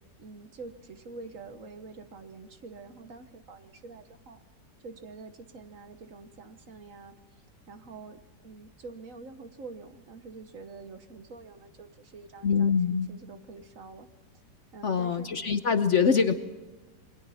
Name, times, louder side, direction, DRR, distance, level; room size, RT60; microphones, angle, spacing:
voice 1, 0.2-4.4 4.8-7.1 7.7-12.7 13.1-14.1 14.7-15.3, right 3 dB, 55° right, 9 dB, 1.5 m, -46 dB
voice 2, 12.4-13.1 14.8-16.3, left 6 dB, 50° left, 9 dB, 1.0 m, -24 dB
27.5 x 22.0 x 4.2 m, 1.2 s
omnidirectional pair, 1.8 m